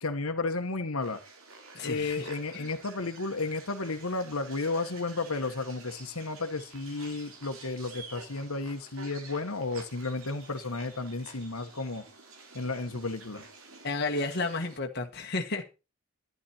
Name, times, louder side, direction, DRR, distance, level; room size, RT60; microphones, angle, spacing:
voice 1, 0.0-1.2 1.8-12.0 12.5-13.4, left 3 dB, 75° left, 6 dB, 1.3 m, -33 dB
sound 1, 1.0-14.8, right 3 dB, 70° right, 2.5 m, -50 dB
voice 2, 1.7-2.7 13.8-15.6, left 3 dB, 50° left, 3 dB, 1.5 m, -32 dB
12.0 x 10.5 x 4.4 m, 0.30 s
head